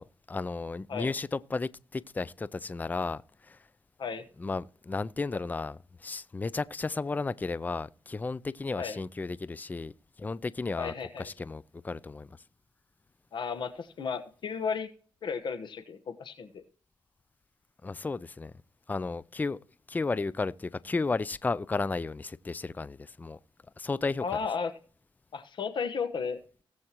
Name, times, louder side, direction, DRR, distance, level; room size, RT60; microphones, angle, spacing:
voice 1, 0.0-3.6 4.4-9.9 10.2-12.4 17.8-18.5 18.9-19.6 19.9-23.4 23.8-24.2, left 3 dB, 20° left, 0.4 m, -33 dB
voice 2, 10.8-11.3 13.3-14.9 15.2-16.6 24.2-24.7 25.3-26.4, left 6 dB, 65° left, 1.2 m, -34 dB
17.5 x 7.8 x 3.0 m
cardioid pair, 105°, 9 cm